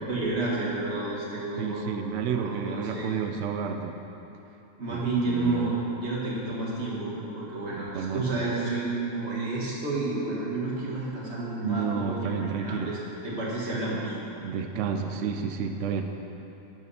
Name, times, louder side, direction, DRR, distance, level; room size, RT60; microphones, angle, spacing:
voice 1, 0.0-1.8 2.3-3.1 4.8-13.0 13.2-14.2, right 2 dB, 40° right, -5 dB, 1.9 m, -30 dB
voice 2, 1.6-4.0 4.9-5.7 7.8-8.2 11.6-13.0 14.4-16.0, right 6 dB, 80° right, 5 dB, 0.6 m, -31 dB
11.0 x 7.6 x 4.2 m, 3.0 s
omnidirectional pair, 1.8 m